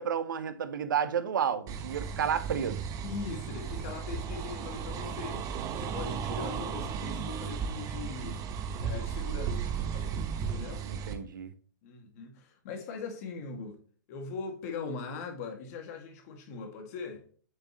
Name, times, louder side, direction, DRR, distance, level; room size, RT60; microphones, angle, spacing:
voice 1, 0.0-2.8 10.8-11.5, right 8 dB, 70° right, 1.2 m, -31 dB
sound 1, 1.7-11.1, right 7 dB, 30° right, 1.3 m, -35 dB
voice 2, 3.0-5.4 5.7-8.4 8.8-10.8 11.8-13.8 14.1-17.2, left 5 dB, 50° left, 2.2 m, -41 dB
7.8 x 6.3 x 3.0 m
hypercardioid pair, 120°, 11 cm